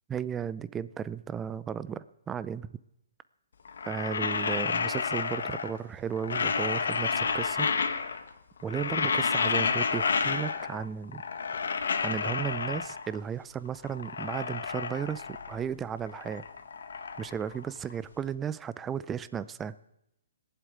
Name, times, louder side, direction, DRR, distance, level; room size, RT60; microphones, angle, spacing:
voice 1, 0.1-2.7 3.8-7.7 8.6-11.2 12.0-16.4 17.2-19.7, right 8 dB, 10° right, 16 dB, 0.5 m, -34 dB
sound 1, 3.7-5.8 6.1-8.3 8.6-10.8 11.1-13.2 13.7-15.7 15.9-18.1, left 5 dB, 75° left, 1.6 m, -30 dB
17.5 x 8.1 x 9.3 m, 0.83 s
hypercardioid pair, 155°, 0 cm